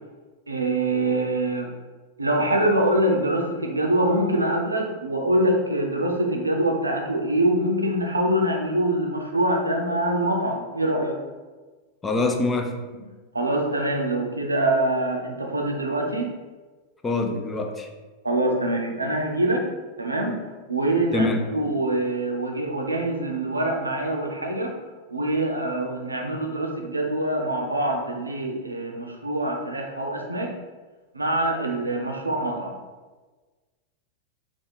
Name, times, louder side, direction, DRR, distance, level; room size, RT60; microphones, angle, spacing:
voice 1, 0.5-1.7 2.2-11.2 13.3-16.3 18.2-19.7 20.0-20.4 20.7-24.7 25.1-30.5 31.1-32.8, right 1 dB, 80° right, 1 dB, 0.6 m, -24 dB
voice 2, 12.0-12.7 17.0-17.9 21.1-21.5, left 2 dB, 15° left, 4 dB, 0.4 m, -24 dB
3.4 x 2.2 x 4.4 m, 1.3 s
figure-of-eight pair, 90°, 0 cm